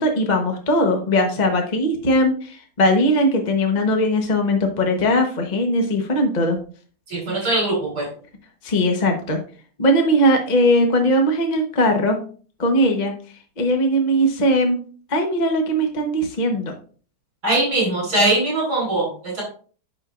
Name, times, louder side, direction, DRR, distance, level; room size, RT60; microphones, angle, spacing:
voice 1, 0.0-6.6 8.6-9.4 9.8-12.2 12.6-13.1 13.6-14.8 15.1-16.7, equal, 30° left, 3 dB, 0.9 m, -19 dB
voice 2, 7.1-8.1 17.4-19.4, right 2 dB, 55° right, -4 dB, 4.4 m, -21 dB
8.5 x 6.7 x 2.5 m, 0.41 s
omnidirectional pair, 2.1 m